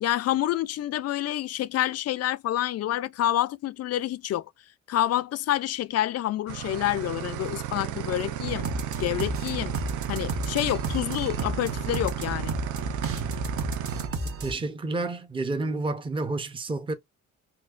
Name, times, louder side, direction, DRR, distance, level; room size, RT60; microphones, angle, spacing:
voice 1, 0.0-4.5 4.9-8.7 9.0-9.7 10.1-12.5, left 13 dB, 55° left, 0.4 m, -28 dB
sound 1, 6.5-14.1, right 11 dB, 75° right, 0.5 m, -34 dB
sound 2, 8.4-14.5, right 2 dB, 45° right, 1.0 m, -33 dB
voice 2, 14.4-16.9, right 2 dB, 15° right, 0.7 m, -30 dB
4.3 x 2.1 x 2.5 m
cardioid pair, 90°, 30 cm